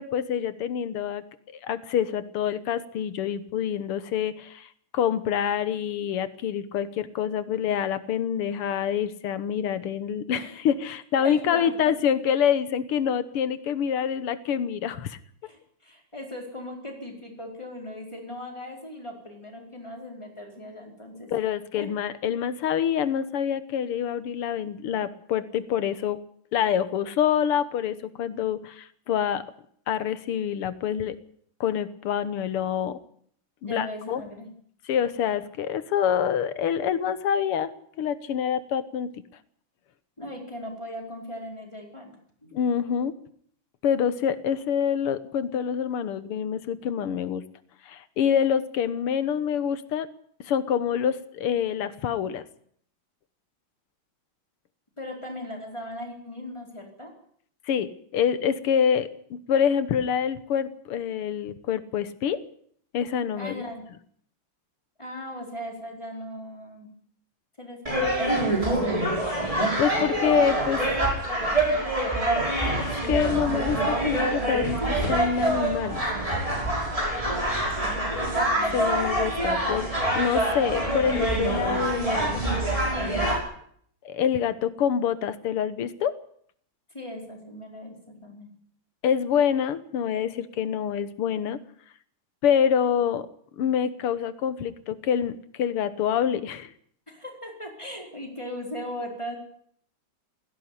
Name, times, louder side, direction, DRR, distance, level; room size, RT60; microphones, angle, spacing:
voice 1, 0.0-15.2 21.3-26.2 26.5-29.4 29.9-31.2 31.6-33.0 33.6-34.2 34.9-37.7 38.0-39.1 42.5-43.1 43.8-47.4 47.9-50.1 50.4-52.4 57.7-62.4 62.9-63.6 69.8-70.8 72.4-76.0 77.9-78.0 78.7-79.9 80.2-82.4 83.0-83.2 84.1-86.1 89.0-91.6 92.4-93.3 93.6-96.7, left 8 dB, 85° left, 14 dB, 2.1 m, -26 dB
voice 2, 11.2-12.0 15.4-21.3 21.8-21.9 33.6-34.5 40.2-42.1 42.4-42.5 55.0-57.1 63.4-63.9 65.0-66.9 67.6-68.9 77.7-78.8 86.9-88.5 97.1-99.4, left 1 dB, 10° left, 1 dB, 4.6 m, -38 dB
sound 1, 67.9-83.4, right 1 dB, 15° right, 5.8 m, -25 dB
17.5 x 16.0 x 9.8 m, 0.63 s
omnidirectional pair, 2.4 m